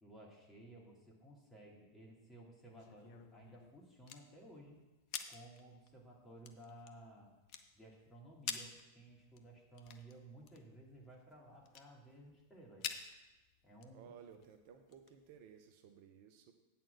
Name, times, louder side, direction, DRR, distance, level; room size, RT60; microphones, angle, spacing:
voice 1, 0.0-4.8 5.3-7.3 7.7-12.9 13.6-14.1, right 1 dB, 15° left, -3 dB, 2.4 m, -57 dB
sound 1, 2.6-15.6, left 8 dB, 45° left, 0.7 m, -50 dB
voice 2, 13.9-16.5, right 7 dB, 45° right, 7 dB, 0.6 m, -57 dB
8.8 x 4.3 x 7.1 m, 1.1 s
figure-of-eight pair, 90°, 0 cm